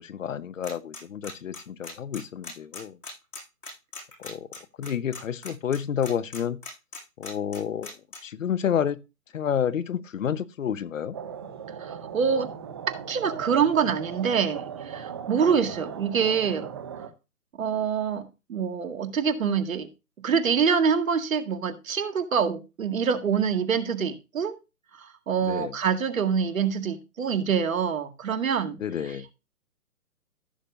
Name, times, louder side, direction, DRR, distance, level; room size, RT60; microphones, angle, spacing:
voice 1, 0.0-3.0 4.2-4.5 4.8-6.6 7.2-7.9 8.2-9.0 9.3-11.2 15.7-15.8 25.4-25.7 28.8-29.3, left 8 dB, 60° left, 0.9 m, -29 dB
sound 1, 0.6-8.2, left 3 dB, 80° left, 6.9 m, -39 dB
sound 2, 11.1-17.1, right 8 dB, 15° right, 0.6 m, -38 dB
voice 2, 11.8-12.5 13.1-16.7 17.6-19.9 20.2-24.6 24.9-28.8, right 6 dB, 65° right, 2.0 m, -25 dB
15.0 x 6.8 x 2.6 m
hypercardioid pair, 155°, 44 cm